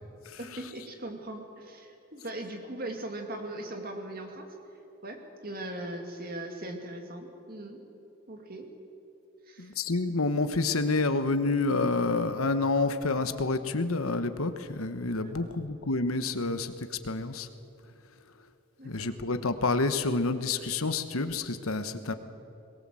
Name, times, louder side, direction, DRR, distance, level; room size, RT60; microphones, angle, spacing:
voice 1, 0.4-4.5 5.0-7.8 8.3-8.7 9.5-9.7 15.2-15.5 18.8-19.1, right 1 dB, 40° right, 4 dB, 2.4 m, -40 dB
voice 2, 9.6-17.5 18.8-22.1, left 3 dB, 75° left, 10 dB, 1.2 m, -28 dB
22.0 x 19.0 x 7.7 m, 2.8 s
head